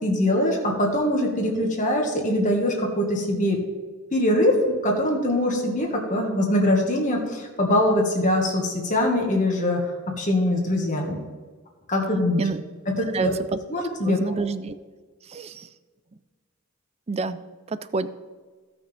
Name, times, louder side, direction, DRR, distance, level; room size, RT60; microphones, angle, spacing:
voice 1, 0.0-3.6 4.1-11.2 11.9-12.5 12.9-13.4 13.7-14.5, left 1 dB, 35° left, 0 dB, 1.7 m, -23 dB
voice 2, 13.1-13.6 14.0-14.7 15.3-15.7 17.1-17.4 17.7-18.1, right 4 dB, 30° right, 14 dB, 0.4 m, -28 dB
16.0 x 6.1 x 3.5 m, 1.4 s
head